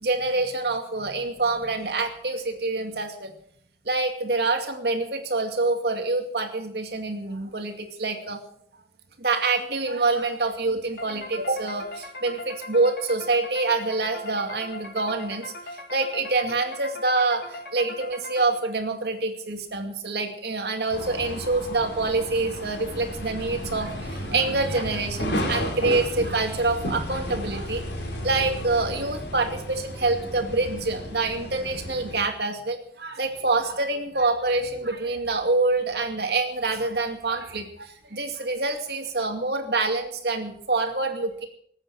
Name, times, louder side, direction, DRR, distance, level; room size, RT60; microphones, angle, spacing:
voice 1, 0.0-3.3 3.9-8.4 9.2-27.8 28.1-41.5, right 3 dB, 70° right, 4 dB, 2.3 m, -26 dB
sound 1, 11.0-18.8, left 1 dB, 60° left, 2.2 m, -40 dB
sound 2, 20.9-32.2, equal, 80° left, 3.4 m, -33 dB
20.0 x 8.9 x 6.4 m, 0.67 s
head